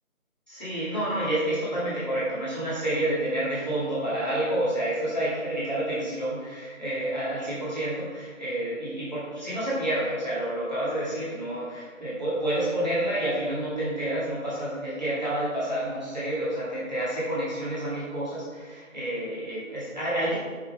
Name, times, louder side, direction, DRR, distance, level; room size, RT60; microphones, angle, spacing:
voice 1, 0.5-20.4, right 1 dB, 30° right, -11 dB, 2.2 m, -29 dB
6.6 x 5.6 x 4.2 m, 1.5 s
figure-of-eight pair, 175°, 42 cm